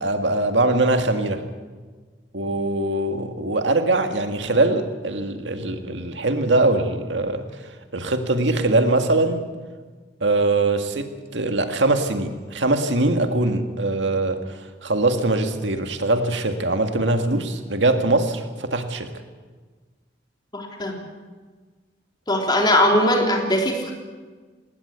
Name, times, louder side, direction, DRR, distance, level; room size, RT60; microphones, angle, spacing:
voice 1, 0.0-1.4 2.3-9.4 10.2-19.1, right 2 dB, 85° right, 6 dB, 2.0 m, -22 dB
voice 2, 20.5-20.9 22.3-23.9, left 1 dB, 25° left, 1 dB, 3.4 m, -20 dB
20.0 x 18.5 x 8.3 m, 1.4 s
head